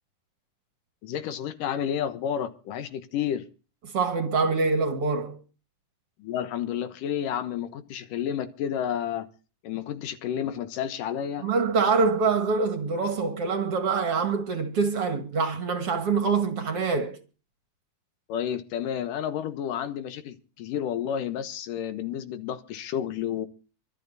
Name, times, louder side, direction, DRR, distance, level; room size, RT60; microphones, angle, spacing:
voice 1, 1.0-3.5 6.2-9.3 9.6-11.5 18.3-23.5, left 9 dB, 75° left, 2.7 m, -31 dB
voice 2, 3.9-5.4 11.4-17.2, right 4 dB, 50° right, 2.3 m, -25 dB
24.5 x 9.4 x 4.1 m
omnidirectional pair, 3.9 m